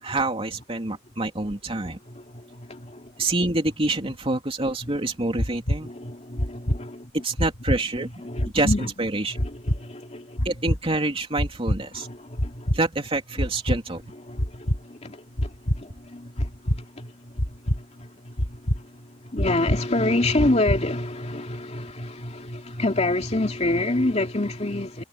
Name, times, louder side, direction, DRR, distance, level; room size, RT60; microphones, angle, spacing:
voice 1, 0.0-2.0 3.2-5.9 7.1-8.1 8.5-8.7 9.0-9.4 10.4-12.1 12.7-14.0, right 2 dB, 30° right, 2.9 m, -26 dB
voice 2, 2.1-3.2 4.8-4.9 5.8-7.1 8.0-8.9 9.3-10.5 11.9-12.8 14.2-25.0, left 2 dB, 35° left, 2.7 m, -28 dB
sound 1, 5.4-5.8 6.4-6.8 7.4-7.8 8.4-8.8 9.4-9.8 10.4-10.8 11.4-11.8 12.4-12.8 13.4-13.8 14.4-14.8 15.4-15.8 16.4-16.8 17.4-17.8 18.4-18.8 19.4-19.8 20.4-20.8, equal, 80° left, 5.7 m, -24 dB
head